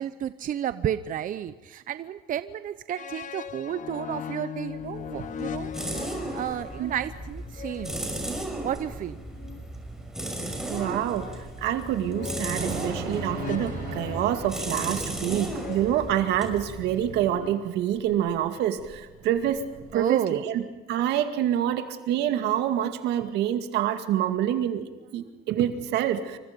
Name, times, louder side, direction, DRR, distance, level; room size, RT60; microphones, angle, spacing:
voice 1, 0.0-5.7 6.3-8.0 8.6-9.2 19.9-20.4, right 10 dB, 55° right, 12 dB, 0.8 m, -31 dB
sound 1, 3.0-9.7 10.7-18.1, left 9 dB, 50° left, 1.2 m, -40 dB
sound 2, 4.8-17.5, right 1 dB, 5° right, 5.8 m, -36 dB
Thunder / Rain, 6.7-19.9, right 6 dB, 70° right, 6.8 m, -41 dB
voice 2, 10.7-11.3 11.6-19.6 19.9-20.6 20.9-26.4, right 11 dB, 85° right, 7 dB, 2.2 m, -27 dB
27.5 x 25.0 x 5.3 m, 1.2 s
cardioid pair, 110°, 17 cm